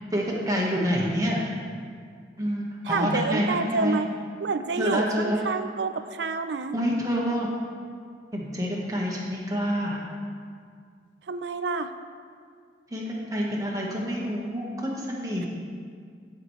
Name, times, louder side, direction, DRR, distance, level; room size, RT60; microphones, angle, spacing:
voice 1, 0.1-1.4 2.4-4.0 4.8-5.4 6.7-7.5 8.3-10.0 12.9-15.5, equal, 20° right, -3 dB, 1.3 m, -27 dB
voice 2, 2.8-4.1 4.4-6.8 11.3-11.9, right 4 dB, 75° right, 10 dB, 0.5 m, -28 dB
15.0 x 5.8 x 3.2 m, 2.1 s
head